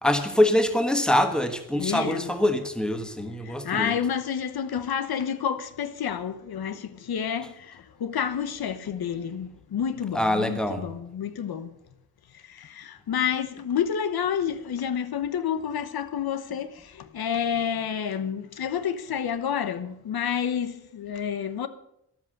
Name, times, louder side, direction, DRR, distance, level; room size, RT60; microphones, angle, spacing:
voice 1, 0.0-3.9 10.1-10.9, left 1 dB, ahead, 1.4 m, -24 dB
voice 2, 1.8-2.3 3.4-11.7 12.5-21.7, left 8 dB, 75° left, 1.1 m, -29 dB
13.0 x 12.0 x 6.6 m
wide cardioid pair, 165°, 37 cm